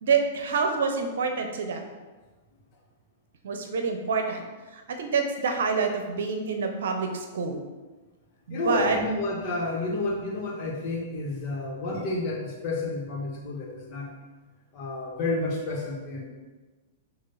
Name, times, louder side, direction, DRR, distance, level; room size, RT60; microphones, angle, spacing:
voice 1, 0.0-2.0 3.4-4.4 4.7-7.6 8.5-9.0, right 5 dB, 65° right, 5 dB, 0.8 m, -27 dB
voice 2, 8.5-14.1 14.7-16.3, left 2 dB, 45° left, -2 dB, 1.8 m, -30 dB
6.8 x 3.0 x 5.7 m, 1.3 s
figure-of-eight pair, 105°, 0 cm